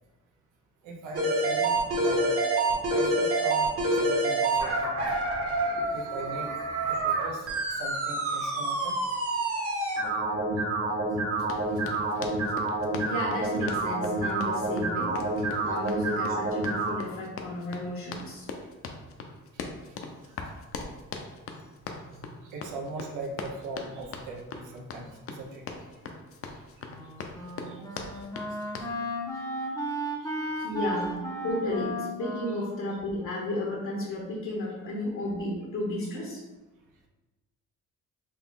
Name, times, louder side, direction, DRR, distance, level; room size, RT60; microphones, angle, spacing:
voice 1, 0.8-2.3 2.9-4.8 5.5-9.0 9.8-10.1 11.6-11.7 20.0-20.3 21.9-25.6 26.5-26.6 27.2-27.3 27.6-27.8 28.6-28.7 29.3-29.5 29.9-30.7, right 2 dB, 85° right, 0 dB, 0.7 m, -41 dB
sound 1, 1.1-16.9, right 2 dB, 50° right, 1.3 m, -28 dB
Run, 11.4-29.0, left 4 dB, 50° left, 0.5 m, -41 dB
voice 2, 13.0-15.1 15.6-18.5 30.6-31.2 31.4-36.4, left 1 dB, 75° left, -4 dB, 1.0 m, -33 dB
Wind instrument woodwind instrument, 26.8-34.0, right 1 dB, 10° left, 0.7 m, -35 dB
4.2 x 2.3 x 3.6 m, 1.1 s
cardioid pair, 90°, 30 cm